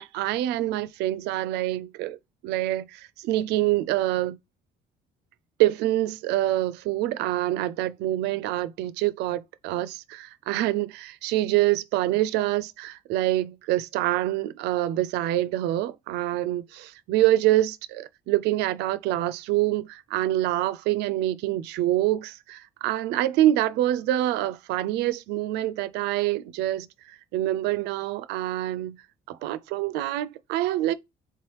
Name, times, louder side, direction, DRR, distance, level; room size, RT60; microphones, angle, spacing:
voice 1, 0.0-2.2 2.4-4.4 5.6-29.0 29.3-30.9, right 14 dB, 85° right, 0.4 m, -26 dB
3.4 x 3.0 x 3.1 m
cardioid pair, 110°, 17 cm